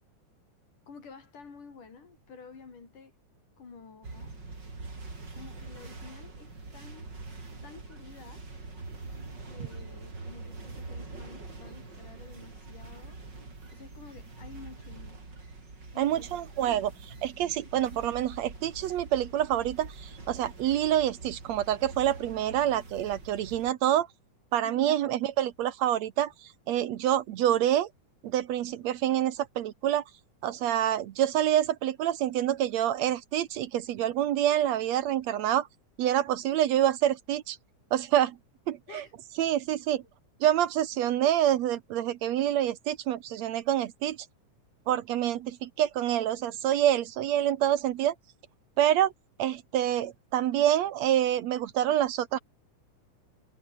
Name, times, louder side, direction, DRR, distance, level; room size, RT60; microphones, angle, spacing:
voice 1, 0.9-3.1 3.6-4.4 5.3-7.1 7.6-8.5 9.5-13.2 13.7-15.2 15.9-16.8 17.8-18.1 24.6-25.0 38.9-39.1, left 5 dB, 85° left, 6.5 m, -50 dB
sound 1, 4.0-23.7, right 3 dB, 35° right, 5.3 m, -44 dB
voice 2, 16.0-16.9 17.2-24.1 24.5-26.3 26.7-27.9 28.2-30.0 30.4-35.7 36.0-37.6 37.9-38.4 38.7-39.0 39.4-40.0 40.4-44.2 44.9-48.1 48.8-49.1 49.4-52.4, right 11 dB, 70° right, 2.0 m, -27 dB
omnidirectional pair, 3.6 m